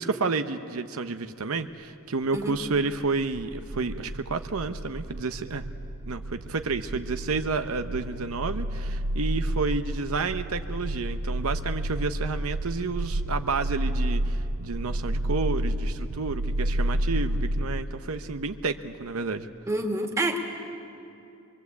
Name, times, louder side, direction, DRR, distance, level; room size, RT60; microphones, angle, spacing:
voice 1, 0.0-5.7 6.1-19.5, right 4 dB, 85° right, 9 dB, 0.8 m, -30 dB
sound 1, 2.4-17.8, right 1 dB, 50° right, 0.6 m, -30 dB
voice 2, 19.7-20.4, right 1 dB, 15° right, 2 dB, 2.0 m, -27 dB
24.0 x 22.5 x 8.2 m, 2.7 s
head